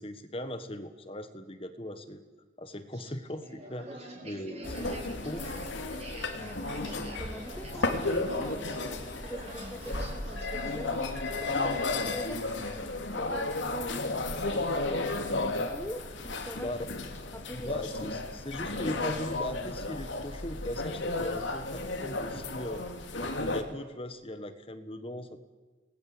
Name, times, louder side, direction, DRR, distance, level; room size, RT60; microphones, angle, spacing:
voice 1, 0.0-2.2 2.6-5.5 16.6-16.9 17.5-22.9 23.2-25.4, left 1 dB, 25° left, 9 dB, 1.5 m, -39 dB
sound 1, 2.9-12.8, right 1 dB, 30° right, 4.5 m, -46 dB
sound 2, 4.6-23.6, left 2 dB, 70° left, 2.9 m, -33 dB
voice 2, 6.3-11.2 11.5-14.1 14.5-15.3 15.6-16.7 17.3-18.0 18.3-18.4, equal, 10° left, 5 dB, 1.4 m, -43 dB
29.0 x 20.5 x 8.0 m, 1.3 s
head